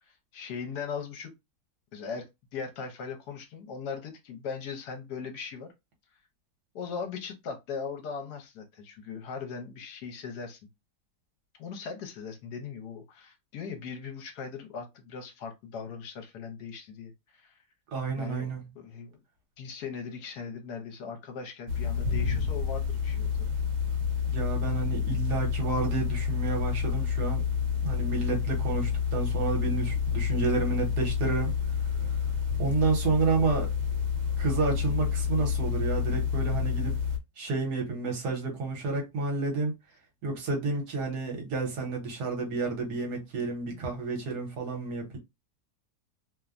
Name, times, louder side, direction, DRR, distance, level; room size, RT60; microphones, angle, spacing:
voice 1, 0.1-1.3 1.9-2.3 2.5-5.7 6.7-10.6 11.6-17.6 18.2-18.5 18.7-19.2 19.6-23.5 43.7-43.8, left 6 dB, 75° left, 1.2 m, -39 dB
voice 2, 17.9-18.6 24.3-27.4 27.8-31.5 32.6-33.7 34.4-37.0 37.4-39.7 40.2-45.2, right 4 dB, 70° right, 1.4 m, -30 dB
sound 1, 21.7-37.2, left 7 dB, 85° right, 1.3 m, -29 dB
3.0 x 2.1 x 2.4 m
omnidirectional pair, 1.9 m